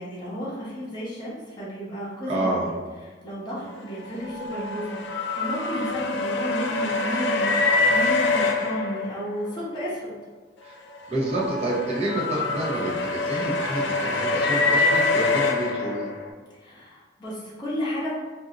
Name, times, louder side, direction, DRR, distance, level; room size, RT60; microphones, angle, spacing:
voice 1, 0.0-2.6 3.2-7.6 7.9-10.1 16.6-18.1, equal, 25° left, -9 dB, 0.8 m, -32 dB
voice 2, 2.3-2.7 10.6-10.8 11.1-16.1, right 1 dB, 35° right, -5 dB, 0.7 m, -28 dB
sound 1, 4.0-9.6 11.0-16.3, left 3 dB, 70° left, 0.4 m, -25 dB
2.6 x 2.1 x 3.7 m, 1.3 s
head